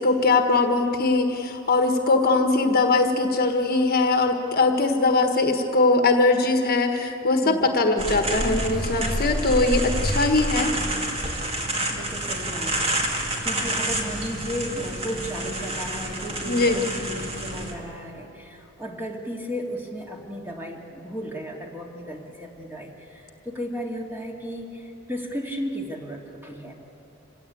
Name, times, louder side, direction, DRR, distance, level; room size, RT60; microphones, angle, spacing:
voice 1, 0.0-10.7 16.5-16.8, left 3 dB, 45° left, 5 dB, 1.5 m, -21 dB
sound 1, 8.0-17.7, right 1 dB, 30° right, 2.4 m, -28 dB
voice 2, 11.9-26.7, equal, 10° right, 0 dB, 2.5 m, -35 dB
26.5 x 17.0 x 8.5 m, 3.0 s
head